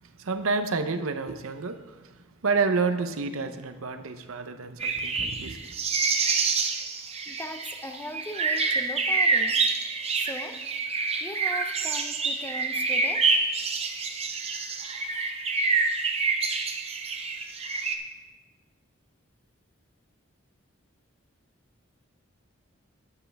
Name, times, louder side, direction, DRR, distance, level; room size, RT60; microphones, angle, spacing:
voice 1, 0.0-5.8, right 4 dB, 85° right, 8 dB, 0.7 m, -29 dB
sound 1, 4.8-17.9, right 4 dB, 30° right, 0.7 m, -27 dB
voice 2, 7.3-9.6 10.1-10.6 11.2-13.2, equal, 10° left, 6 dB, 0.5 m, -39 dB
12.5 x 9.4 x 3.4 m, 1.2 s
head